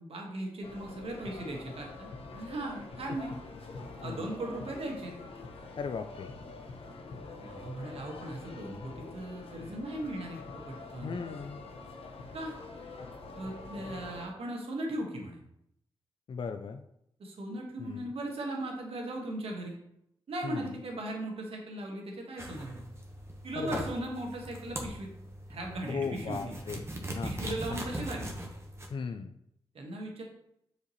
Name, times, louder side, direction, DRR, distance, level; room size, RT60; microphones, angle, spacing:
voice 1, 0.0-3.3 4.0-5.2 7.3-11.2 12.3-12.5 13.3-15.4 17.2-19.8 20.3-22.8 23.4-25.1 25.5-26.5 27.2-28.3 29.7-30.2, right 1 dB, 75° right, 0 dB, 1.5 m, -38 dB
sound 1, 0.6-14.3, left 3 dB, 70° left, 0.9 m, -45 dB
voice 2, 5.8-6.3 11.0-11.6 16.3-16.8 17.8-18.0 20.4-20.7 23.6-23.8 25.9-26.8 27.2-27.8 28.9-29.4, left 5 dB, 55° left, 7 dB, 0.4 m, -37 dB
sound 2, 22.4-28.9, right 1 dB, 25° right, 1.3 m, -40 dB
6.9 x 5.0 x 3.1 m, 0.77 s
cardioid pair, 70°, 10 cm